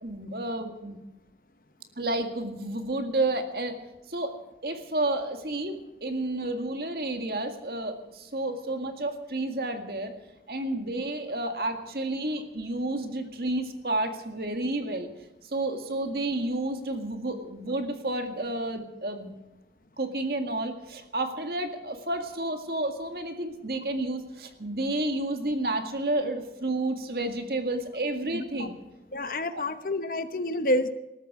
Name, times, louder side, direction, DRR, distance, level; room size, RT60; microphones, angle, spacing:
voice 1, 0.0-1.0 2.0-3.8 4.1-4.3 4.6-10.1 10.5-15.1 15.4-19.3 20.0-28.7 29.5-29.6, right 2 dB, 55° right, 6 dB, 1.9 m, -31 dB
voice 2, 28.3-28.7 29.1-30.9, left 1 dB, 50° left, 10 dB, 1.0 m, -28 dB
20.0 x 13.0 x 4.9 m, 0.97 s
head